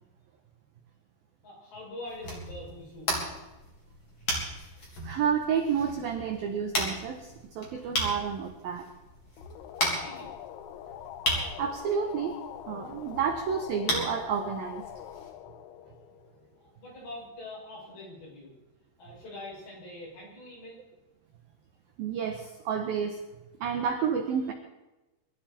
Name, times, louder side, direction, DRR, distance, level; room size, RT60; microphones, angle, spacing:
voice 1, 1.4-3.1 9.9-10.3 16.6-18.5 19.0-20.8, left 2 dB, 60° left, -5 dB, 8.9 m, -44 dB
sound 1, 2.1-15.3, equal, 30° left, 3.4 m, -36 dB
voice 2, 5.0-8.9 11.6-12.4 12.7-14.8 22.0-23.2 23.6-24.5, right 7 dB, 75° right, 4 dB, 2.2 m, -30 dB
sound 2, 9.4-16.8, left 11 dB, 85° left, 3.4 m, -44 dB
23.0 x 13.0 x 4.4 m, 1.0 s
omnidirectional pair, 5.8 m